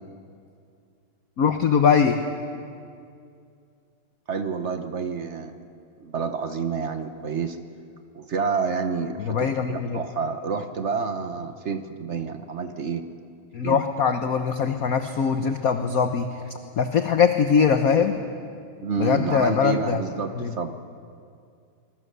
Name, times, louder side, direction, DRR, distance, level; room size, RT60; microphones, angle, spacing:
voice 1, 1.4-2.2 9.2-10.0 13.5-16.3 16.8-18.1 19.0-20.0 20.4-20.5, left 6 dB, 55° left, 7 dB, 1.1 m, -21 dB
voice 2, 4.3-5.6 6.0-7.6 8.1-13.0 13.6-13.8 18.8-20.7, right 5 dB, 50° right, 8 dB, 0.9 m, -29 dB
24.5 x 22.0 x 6.8 m, 2.4 s
omnidirectional pair, 2.4 m